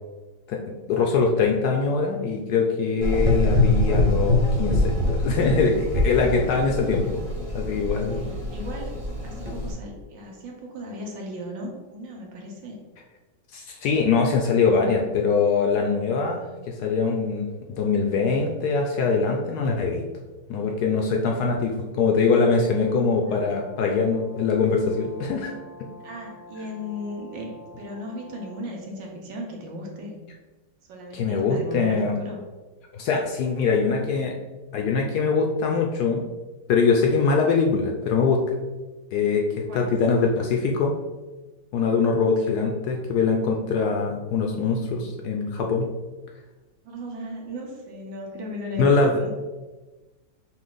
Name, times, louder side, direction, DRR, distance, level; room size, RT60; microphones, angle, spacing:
voice 1, 0.5-7.2 7.5-8.3 13.5-16.4 16.7-20.0 20.5-25.5 25.8-25.9 31.1-32.2 32.9-34.3 34.7-36.2 36.7-38.4 39.1-40.9 41.7-45.9 48.8-49.1, left 4 dB, 70° left, 2 dB, 1.0 m, -23 dB
Gurgling / Engine, 3.0-9.7, left 1 dB, 50° right, 0.4 m, -24 dB
voice 2, 8.2-8.9 9.2-12.8 23.2-23.4 26.0-30.2 30.9-32.4 39.7-40.0 46.8-49.3, equal, 80° right, -1 dB, 1.6 m, -36 dB
Brass instrument, 22.4-28.7, left 2 dB, 20° left, 0.6 m, -47 dB
5.7 x 2.4 x 3.8 m, 1.2 s
omnidirectional pair, 2.0 m